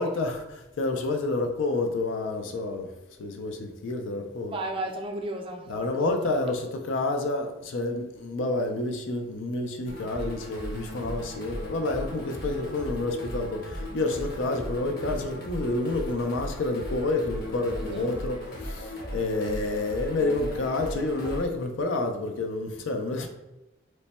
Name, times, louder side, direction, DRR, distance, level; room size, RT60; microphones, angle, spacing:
voice 1, 0.0-2.9 3.2-4.5 5.7-23.3, left 2 dB, 75° left, 0.4 m, -29 dB
voice 2, 4.5-6.2 17.8-18.0, right 1 dB, 25° right, 0.4 m, -34 dB
sound 1, 9.9-21.4, equal, 50° left, 0.8 m, -37 dB
3.1 x 2.1 x 4.1 m
head